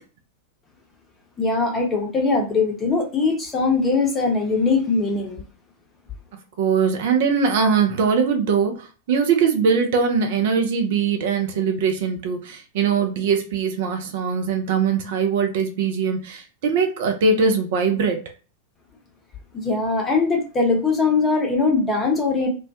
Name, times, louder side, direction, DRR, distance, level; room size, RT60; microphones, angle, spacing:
voice 1, 1.4-5.4 19.5-22.5, left 4 dB, 20° left, 1 dB, 0.8 m, -21 dB
voice 2, 6.6-18.2, right 5 dB, 55° right, 4 dB, 0.4 m, -21 dB
2.2 x 2.1 x 2.6 m, 0.35 s
figure-of-eight pair, 90°, 0 cm